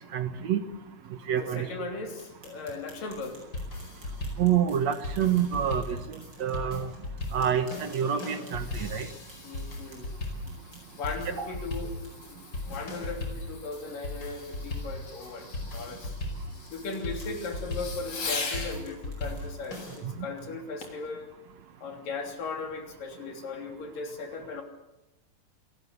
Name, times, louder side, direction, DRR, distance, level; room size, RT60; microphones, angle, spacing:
voice 1, 0.1-0.6 1.3-1.7 4.4-6.9 7.3-9.1 11.4-11.5, right 9 dB, 60° right, 10 dB, 2.2 m, -27 dB
voice 2, 1.4-3.4 9.4-10.1 10.9-16.3 16.7-21.3 21.8-24.6, left 3 dB, 80° left, 4 dB, 4.9 m, -38 dB
sound 1, 2.1-11.4 12.0-12.1 12.5-12.6 13.0-13.1 13.5-13.6 13.9-14.2 14.7-14.8 15.3-15.4 15.9-16.0 16.6-20.7, right 1 dB, 30° right, 8.6 m, -57 dB
sound 2, 3.1-20.0, left 2 dB, 30° left, 5.6 m, -38 dB
Fireworks, 8.0-18.8 20.8-21.1 21.7-21.8, left 4 dB, 50° left, 4.4 m, -42 dB
28.0 x 19.0 x 8.3 m, 0.92 s
omnidirectional pair, 3.8 m